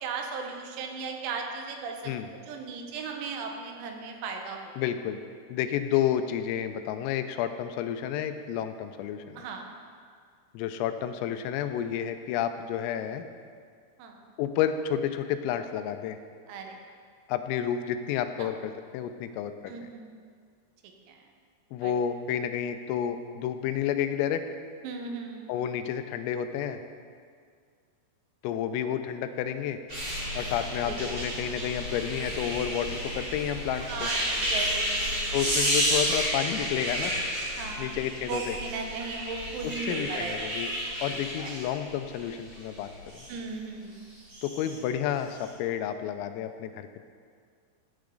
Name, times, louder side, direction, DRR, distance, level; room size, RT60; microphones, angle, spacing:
voice 1, 0.0-2.0 2.5-4.7 9.4-9.7 14.0-14.2 16.5-16.8 18.4-18.5 19.7-20.1 21.8-21.9 24.8-25.5 30.8-31.0 33.9-35.3 37.6-37.9 38.3-40.4 41.1-41.5 43.3-44.0, right 5 dB, 90° right, 3 dB, 3.9 m, -37 dB
voice 2, 4.8-5.2 5.5-9.5 10.5-13.2 14.4-16.2 17.3-19.9 21.7-24.4 25.5-26.8 28.4-29.8 30.3-34.1 35.3-37.1 37.8-38.6 39.6-40.7 41.0-42.9 44.4-47.0, left 9 dB, 85° left, 9 dB, 3.2 m, -30 dB
sound 1, 29.9-43.3 44.2-44.8 45.3-45.4, equal, 25° right, 2.1 m, -31 dB
15.5 x 8.9 x 3.8 m, 2.1 s
omnidirectional pair, 6.0 m